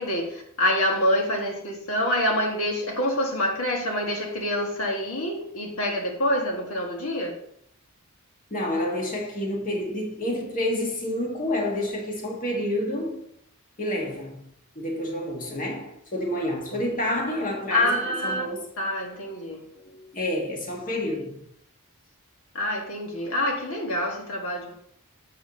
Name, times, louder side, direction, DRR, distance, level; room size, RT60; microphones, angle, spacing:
voice 1, 0.0-7.4 17.7-18.5 18.8-19.7 22.5-24.7, left 1 dB, 70° left, 1.7 m, -26 dB
voice 2, 8.5-13.3 13.8-14.4 14.8-18.7 19.8-21.5, left 1 dB, 40° left, 1.8 m, -29 dB
7.2 x 5.1 x 6.4 m
head